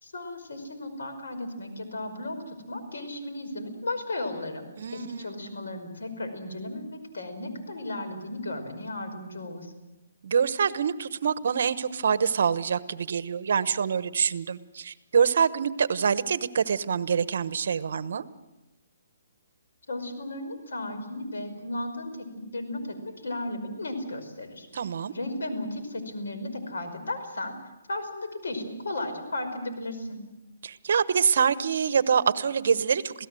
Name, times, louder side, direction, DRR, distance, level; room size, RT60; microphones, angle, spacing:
voice 1, 0.0-4.7 4.9-9.7 19.9-24.7 25.1-27.5 27.9-30.2, left 1 dB, 85° left, 6 dB, 5.3 m, -35 dB
voice 2, 4.8-5.3 10.2-18.2 24.7-25.1 30.6-33.3, right 6 dB, 60° right, 15 dB, 1.1 m, -25 dB
27.0 x 17.0 x 7.7 m, 1.0 s
hypercardioid pair, 165°, 0 cm